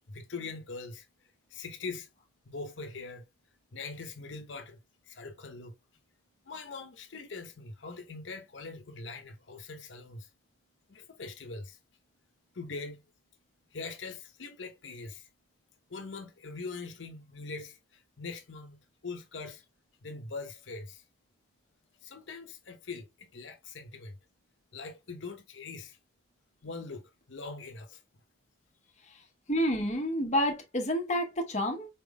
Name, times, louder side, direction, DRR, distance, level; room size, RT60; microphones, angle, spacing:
voice 1, 0.1-1.1 1.5-2.1 2.4-3.3 3.7-4.8 5.0-5.7 6.4-10.3 10.9-11.8 12.5-13.0 13.7-15.3 15.9-19.6 20.0-21.0 22.0-24.2 24.7-26.0 26.6-28.0, left 4 dB, 85° left, 0.8 m, -42 dB
voice 2, 29.5-31.9, equal, 40° left, 1.0 m, -29 dB
4.5 x 3.4 x 2.2 m
head